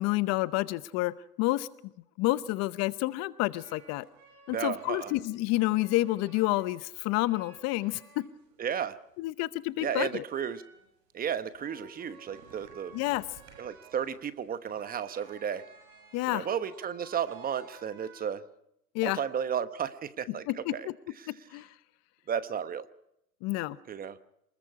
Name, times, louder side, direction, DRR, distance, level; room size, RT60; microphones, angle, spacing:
voice 1, 0.0-1.7 2.2-4.1 4.5-8.3 9.2-10.2 12.9-13.2 16.1-16.5 18.9-19.2 20.5-20.9 21.5-21.7 23.4-23.8, left 18 dB, 35° left, 16 dB, 0.8 m, -29 dB
sound 1, 3.6-6.8 7.2-8.6 9.0-18.3, right 5 dB, 65° right, 7.6 m, -55 dB
voice 2, 4.5-5.1 8.6-9.0 9.8-10.6 11.1-12.9 13.6-15.6 16.3-18.4 19.0-20.9 21.2-21.3 22.3-22.9 23.9-24.2, right 8 dB, 20° right, 13 dB, 1.0 m, -33 dB
28.0 x 21.0 x 4.8 m, 0.80 s
hypercardioid pair, 115°, 47 cm